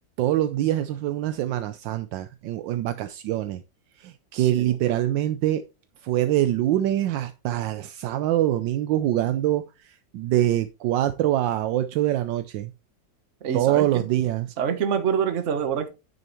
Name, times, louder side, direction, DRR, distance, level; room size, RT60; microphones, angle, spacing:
voice 1, 0.2-3.6 4.0-5.6 6.0-12.7 13.5-14.5, right 13 dB, 80° right, 1.3 m, -24 dB
voice 2, 4.3-4.8 13.4-14.0 14.6-15.9, right 7 dB, 45° right, 1.2 m, -26 dB
9.5 x 7.9 x 3.0 m
omnidirectional pair, 2.0 m